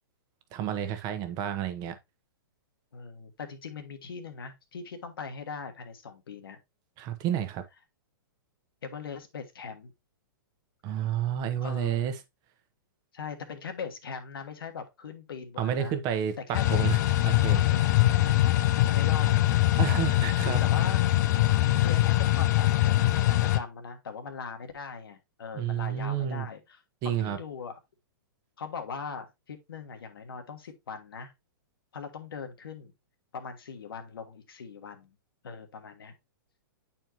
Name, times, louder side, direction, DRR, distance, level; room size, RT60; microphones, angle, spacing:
voice 1, 0.5-2.0 7.0-7.6 10.8-12.1 15.6-16.4 16.7-17.0 17.2-17.9 19.8-20.6 25.5-26.5 27.0-27.4, right 10 dB, 35° right, 1.0 m, -30 dB
voice 2, 2.9-6.6 8.8-9.9 10.9-11.0 11.6-12.1 13.1-16.0 16.5-16.7 17.3-20.0 20.4-21.0 21.8-27.8 28.6-31.3 31.9-32.9 33.3-35.1 35.4-36.1, left 5 dB, 85° left, 1.4 m, -40 dB
sound 1, 16.5-23.6, left 15 dB, 50° left, 0.5 m, -23 dB
9.1 x 4.4 x 2.9 m
hypercardioid pair, 140°, 12 cm